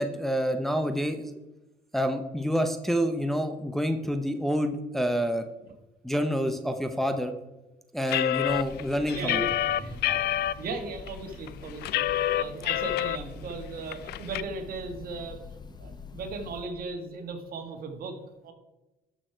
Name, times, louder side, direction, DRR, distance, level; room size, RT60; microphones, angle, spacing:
voice 1, 0.0-1.3 1.9-5.4 6.0-7.3 7.9-9.4, equal, ahead, 6 dB, 0.7 m, -28 dB
sound 1, 8.1-10.5 11.1-11.2 11.5-13.2 13.5-13.6 13.9-14.4, left 13 dB, 75° left, 0.5 m, -27 dB
Breathing / Bird, 8.3-16.8, left 5 dB, 25° left, 1.0 m, -45 dB
voice 2, 9.1-10.3 10.6-12.0 12.3-15.4 15.8-18.2 18.4-18.5, right 3 dB, 60° right, 5 dB, 1.8 m, -37 dB
13.0 x 6.4 x 4.5 m, 1.0 s
cardioid pair, 110°, 17 cm